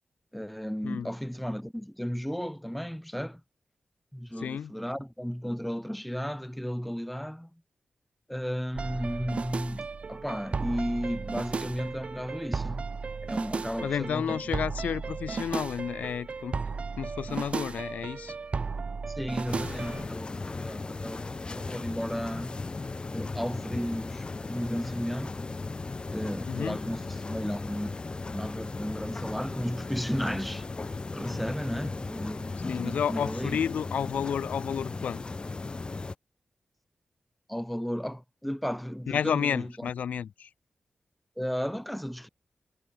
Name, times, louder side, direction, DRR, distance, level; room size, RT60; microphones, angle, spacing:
voice 1, 0.3-3.4 4.1-7.5 8.3-12.9 13.2-14.4 19.1-22.6 23.1-25.5 26.1-30.7 31.1-32.6 32.8-33.7 37.5-39.7 41.4-42.3, equal, ahead, 0.4 m, -34 dB
voice 2, 4.4-4.7 13.8-16.6 17.0-18.4 26.5-26.8 32.7-35.2 39.1-40.5, left 8 dB, 85° left, 0.3 m, -31 dB
sound 1, 8.7-20.1, right 4 dB, 55° right, 0.8 m, -35 dB
sound 2, 19.5-36.1, left 3 dB, 40° left, 0.7 m, -36 dB
cardioid pair, 55°, 2 cm